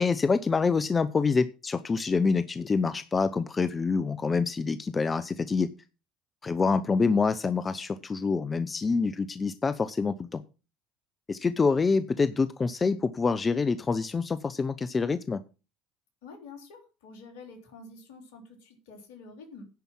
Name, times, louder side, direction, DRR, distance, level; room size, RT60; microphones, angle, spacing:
voice 1, 0.0-5.7 6.4-10.4 11.3-15.4, left 4 dB, 30° left, 13 dB, 0.7 m, -26 dB
voice 2, 16.2-19.7, left 3 dB, 75° left, 4 dB, 3.5 m, -48 dB
10.5 x 5.3 x 7.5 m, 0.33 s
hypercardioid pair, 65°, 0 cm